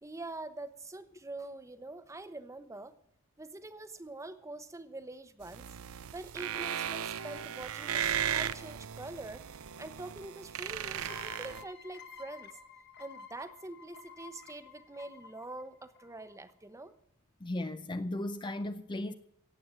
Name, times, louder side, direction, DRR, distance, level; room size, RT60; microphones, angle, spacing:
voice 1, 0.0-2.9 3.4-5.7 6.1-9.4 9.8-12.5 13.0-16.9, right 2 dB, 15° right, 0.9 m, -45 dB
sound 1, 5.4-11.6, right 9 dB, 70° right, 0.6 m, -36 dB
sound 2, 11.0-16.5, left 6 dB, 50° left, 1.7 m, -52 dB
voice 2, 17.4-19.1, left 1 dB, 20° left, 0.5 m, -36 dB
17.0 x 7.9 x 8.7 m
head